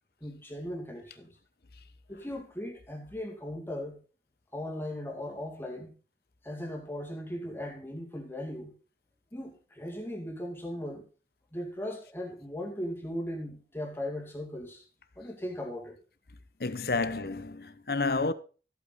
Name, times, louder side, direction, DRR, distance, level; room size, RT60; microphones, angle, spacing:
voice 1, 0.2-1.3 2.1-4.0 4.5-6.0 6.4-8.7 9.3-11.0 11.5-14.8 15.2-16.0, left 1 dB, 10° left, 2.4 m, -38 dB
voice 2, 16.6-18.3, left 3 dB, 55° left, 0.9 m, -30 dB
14.5 x 8.4 x 4.1 m
head